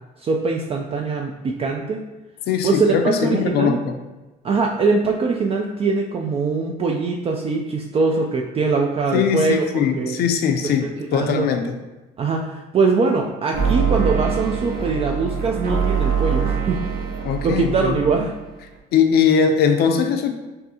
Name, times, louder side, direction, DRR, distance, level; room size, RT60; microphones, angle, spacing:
voice 1, 0.2-2.0 2.6-3.8 4.4-9.6 10.0-10.2 10.6-11.5 12.2-16.8 17.4-18.3, right 4 dB, 35° right, 1 dB, 0.4 m, -22 dB
voice 2, 2.5-3.9 9.1-11.6 17.2-18.0 18.9-20.3, left 7 dB, 70° left, 6 dB, 0.5 m, -20 dB
sound 1, 13.5-18.4, right 6 dB, 60° right, 0.9 m, -23 dB
5.4 x 2.6 x 2.8 m, 1.1 s
cardioid pair, 110°, 17 cm